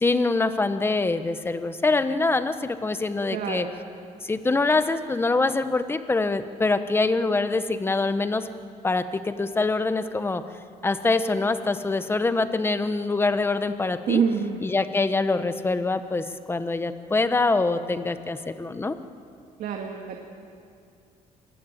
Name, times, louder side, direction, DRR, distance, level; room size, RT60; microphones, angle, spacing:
voice 1, 0.0-3.6 4.2-8.5 8.8-10.4 10.8-14.2 14.6-19.0, left 3 dB, 15° left, 10 dB, 1.1 m, -24 dB
voice 2, 3.3-3.7 14.1-14.7 19.6-20.2, right 7 dB, 75° right, 2 dB, 2.1 m, -26 dB
26.0 x 20.5 x 9.1 m, 2.4 s
cardioid pair, 135°, 14 cm